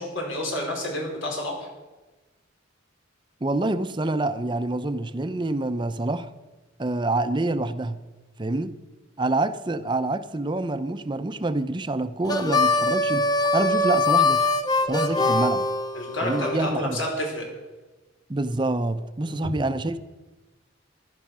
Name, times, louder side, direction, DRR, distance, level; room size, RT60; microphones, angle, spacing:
voice 1, 0.0-1.7 15.1-15.2 15.9-17.4 19.2-19.4, left 1 dB, 90° left, 4.8 m, -29 dB
voice 2, 3.4-6.3 6.8-8.0 8.4-8.7 9.2-14.5 14.9-15.7 16.2-17.0 18.3-20.0, right 2 dB, 25° right, 0.6 m, -26 dB
Harmonica, 12.2-16.5, left 2 dB, 20° left, 0.9 m, -22 dB
15.5 x 11.5 x 6.1 m
head